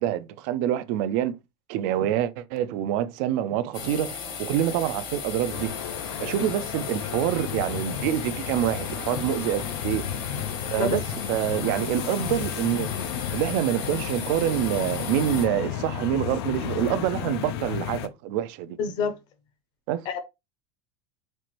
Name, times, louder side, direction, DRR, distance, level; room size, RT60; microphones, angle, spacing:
voice 1, 0.0-1.4 1.7-5.7 6.2-10.1 10.7-12.9 13.3-18.8 19.9-20.0, right 11 dB, 55° right, 0.4 m, -26 dB
sound 1, 3.7-15.5, left 6 dB, 70° left, 1.3 m, -36 dB
sound 2, 5.5-18.1, left 9 dB, 85° left, 0.5 m, -33 dB
voice 2, 18.8-19.2 20.0-20.2, left 5 dB, 35° left, 0.7 m, -27 dB
4.3 x 2.5 x 3.0 m
cardioid pair, 170°, 13 cm